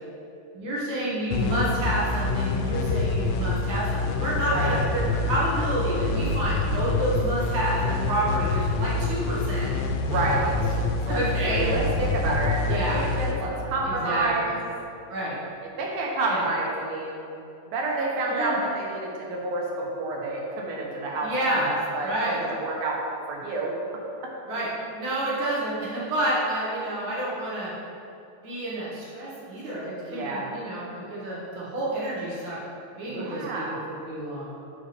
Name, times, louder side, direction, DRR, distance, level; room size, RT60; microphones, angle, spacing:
voice 1, 0.5-9.7 11.1-11.6 12.6-13.0 13.8-14.5 15.1-15.4 16.2-16.4 18.3-18.6 21.2-21.7 22.0-22.4 24.5-27.7 28.4-32.6 33.0-33.6 34.0-34.5, right 1 dB, 50° right, -7 dB, 1.4 m, -29 dB
sound 1, 1.3-14.6, left 3 dB, 85° left, 2.4 m, -27 dB
voice 2, 9.9-10.8 11.1-14.6 15.8-17.3 17.7-23.0 23.3-23.7 30.1-30.5 33.1-33.8, right 2 dB, 80° right, -2 dB, 2.7 m, -29 dB
7.6 x 5.4 x 3.4 m, 2.7 s
omnidirectional pair, 4.2 m